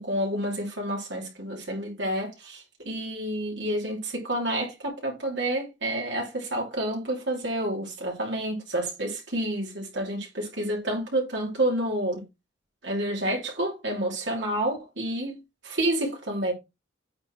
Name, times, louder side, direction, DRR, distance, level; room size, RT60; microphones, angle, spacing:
voice 1, 0.0-12.2 12.8-15.4 15.6-16.5, right 1 dB, 70° right, 3.0 m, -29 dB
8.5 x 4.4 x 4.7 m
head